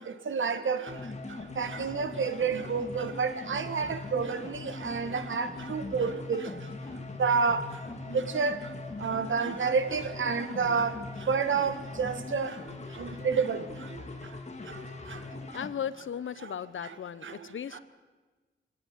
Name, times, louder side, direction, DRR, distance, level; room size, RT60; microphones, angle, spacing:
voice 1, 0.3-0.8 1.6-6.4 7.2-7.6 8.1-8.6 9.0-10.9 11.3-12.5 13.0-13.6 17.2-17.3, right 5 dB, 80° right, 11 dB, 1.9 m, -29 dB
sound 1, 0.9-15.7, left 3 dB, 35° left, 2.6 m, -41 dB
voice 2, 15.5-17.8, left 8 dB, 85° left, 16 dB, 1.1 m, -36 dB
25.0 x 18.0 x 9.6 m, 1.3 s
wide cardioid pair, 140°, 20 cm